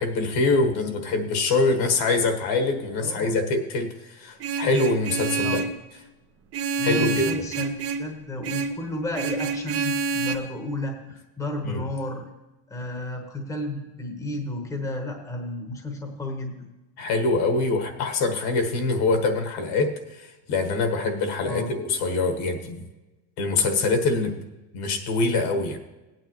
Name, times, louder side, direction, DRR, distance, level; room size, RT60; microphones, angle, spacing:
voice 1, 0.0-5.6 6.8-7.3 11.6-11.8 17.0-22.8 23.4-24.3 24.7-25.8, left 3 dB, 50° left, 5 dB, 1.4 m, -24 dB
voice 2, 3.0-3.4 5.4-5.7 6.8-12.3 12.7-16.5 21.4-21.7, left 1 dB, 5° left, 3 dB, 1.1 m, -32 dB
Vehicle horn car horn honking, 4.4-5.8 6.5-8.1 8.4-8.8 9.1-10.4, right 4 dB, 30° right, 0.6 m, -27 dB
17.0 x 9.1 x 3.0 m, 1.1 s
cardioid pair, 155°, 49 cm